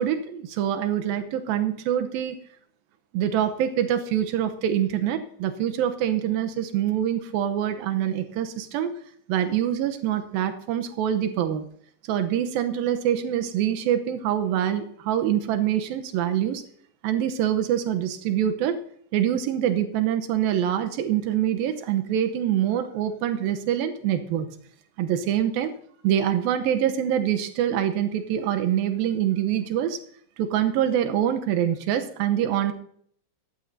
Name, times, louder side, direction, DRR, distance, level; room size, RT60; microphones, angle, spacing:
voice 1, 0.0-2.4 3.1-8.9 9.3-11.6 12.1-16.6 17.0-18.8 19.1-24.5 25.0-25.7 26.0-30.0 30.4-32.7, right 10 dB, 75° right, 7 dB, 2.2 m, -25 dB
18.0 x 13.5 x 2.7 m, 0.63 s
omnidirectional pair, 5.2 m